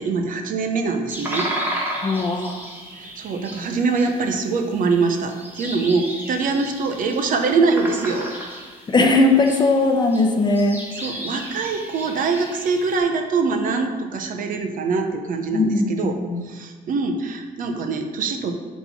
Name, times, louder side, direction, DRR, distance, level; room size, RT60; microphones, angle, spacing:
voice 1, 0.0-1.5 2.9-8.3 11.0-16.2 16.4-18.6, right 4 dB, 55° right, 5 dB, 0.8 m, -23 dB
sound 1, 1.1-13.0, right 1 dB, 10° right, 1.4 m, -34 dB
voice 2, 2.0-2.6 8.9-10.8 15.5-16.4, left 2 dB, 25° left, 3 dB, 0.8 m, -19 dB
5.5 x 4.1 x 6.0 m, 1.5 s
cardioid pair, 110°, 17 cm